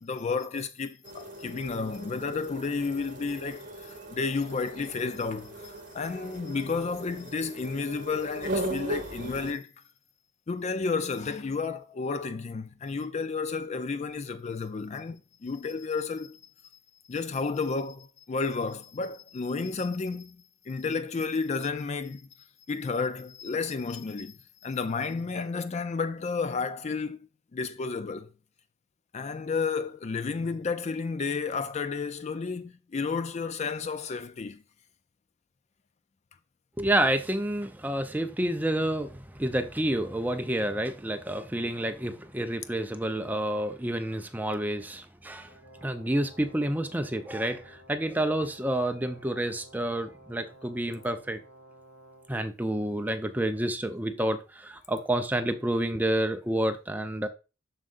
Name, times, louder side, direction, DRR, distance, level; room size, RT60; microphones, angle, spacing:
voice 1, 0.0-9.7 10.5-16.4 17.1-22.3 22.7-27.2 27.5-28.3 29.1-34.6, left 4 dB, 35° left, 0.4 m, -32 dB
sound 1, 1.0-9.5, right 1 dB, 40° right, 1.3 m, -38 dB
voice 2, 36.8-45.5 45.8-51.4 52.3-57.3, right 1 dB, 10° right, 0.6 m, -29 dB
Brass instrument, 45.5-52.4, right 1 dB, 75° left, 4.5 m, -54 dB
7.4 x 6.4 x 2.5 m
head